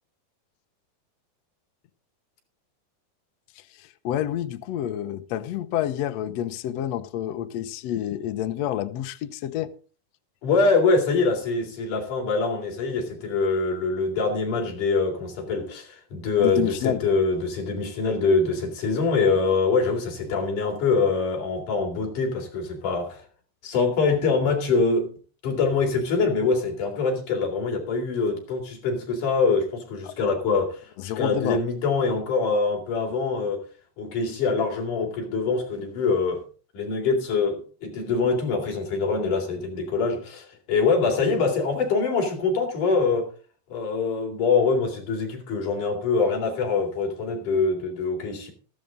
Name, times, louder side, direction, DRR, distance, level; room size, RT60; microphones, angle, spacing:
voice 1, 3.8-9.7 16.4-17.0 30.1-30.2 31.0-31.6, left 11 dB, 85° left, 1.4 m, -29 dB
voice 2, 10.4-23.2 23.6-25.1 25.4-33.6 34.0-36.4 36.7-43.3 43.7-48.5, left 4 dB, 55° left, 4.9 m, -24 dB
15.0 x 12.5 x 3.8 m
omnidirectional pair, 4.3 m